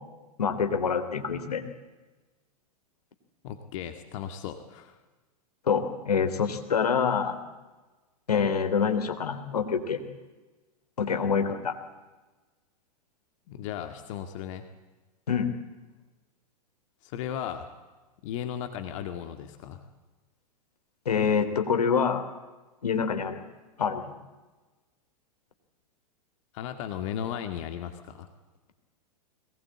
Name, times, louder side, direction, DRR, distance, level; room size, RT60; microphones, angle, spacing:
voice 1, 0.4-1.6 5.7-7.4 8.3-10.0 11.0-11.8 15.3-15.5 21.0-22.2 22.8-23.4 23.8-24.0, left 6 dB, 80° left, 8 dB, 3.2 m, -26 dB
voice 2, 3.4-5.0 13.5-14.6 17.0-17.7 18.2-19.8 26.5-28.3, left 9 dB, 55° left, 8 dB, 2.0 m, -36 dB
22.0 x 19.5 x 8.6 m, 1.2 s
hypercardioid pair, 105°, 20 cm